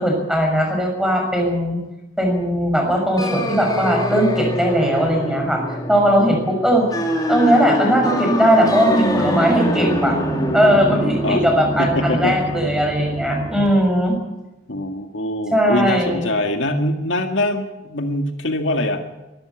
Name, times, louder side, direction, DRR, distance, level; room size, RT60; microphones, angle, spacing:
voice 1, 0.0-1.8 2.2-6.9 7.3-10.2 10.5-14.2 15.5-16.3, equal, 5° right, 2 dB, 6.2 m, -18 dB
sound 1, 3.2-13.7, equal, 20° left, 3.4 m, -24 dB
voice 2, 11.8-12.4 14.7-19.0, left 1 dB, 70° left, 5 dB, 2.1 m, -23 dB
24.0 x 13.0 x 8.3 m, 1.0 s
head